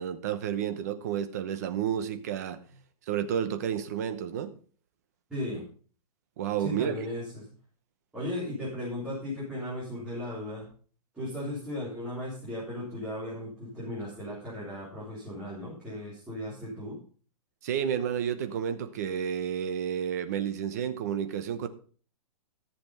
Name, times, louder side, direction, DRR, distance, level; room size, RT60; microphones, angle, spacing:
voice 1, 0.0-2.6 3.1-4.5 6.4-7.0 17.6-21.7, right 9 dB, 25° right, 10 dB, 0.9 m, -31 dB
voice 2, 5.3-5.7 6.6-7.5 8.1-10.7 11.1-17.0, left 1 dB, 5° right, -11 dB, 3.8 m, -36 dB
14.0 x 7.0 x 5.5 m, 0.42 s
hypercardioid pair, 180°, 20 cm